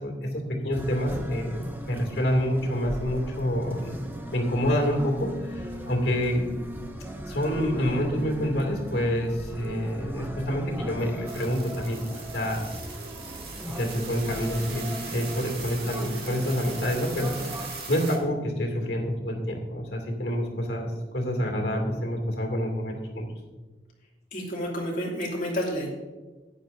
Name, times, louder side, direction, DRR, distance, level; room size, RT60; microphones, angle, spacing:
voice 1, 0.0-4.0 4.3-6.5 7.2-12.0 12.3-12.8 13.7-14.8 15.1-23.3, equal, 70° left, 2 dB, 2.4 m, -27 dB
sound 1, 0.7-17.7, right 1 dB, 10° right, 0.8 m, -38 dB
sound 2, 11.3-18.2, right 4 dB, 60° right, 1.9 m, -40 dB
voice 2, 24.3-25.9, equal, 45° left, -3 dB, 2.5 m, -30 dB
13.5 x 10.0 x 2.6 m, 1.2 s
head